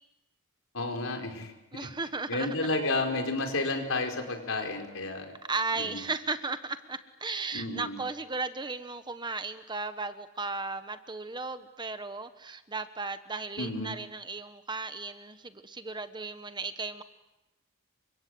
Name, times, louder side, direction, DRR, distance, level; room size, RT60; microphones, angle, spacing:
voice 1, 0.7-1.9 2.3-5.3 5.8-6.0 7.5-8.0 13.6-14.0, left 2 dB, 70° left, 4 dB, 5.0 m, -32 dB
voice 2, 1.7-2.6 5.5-17.0, right 3 dB, 20° right, 10 dB, 1.3 m, -35 dB
sound 1, 2.7-6.6, left 2 dB, 55° left, 4.2 m, -48 dB
30.0 x 25.5 x 7.9 m, 0.94 s
head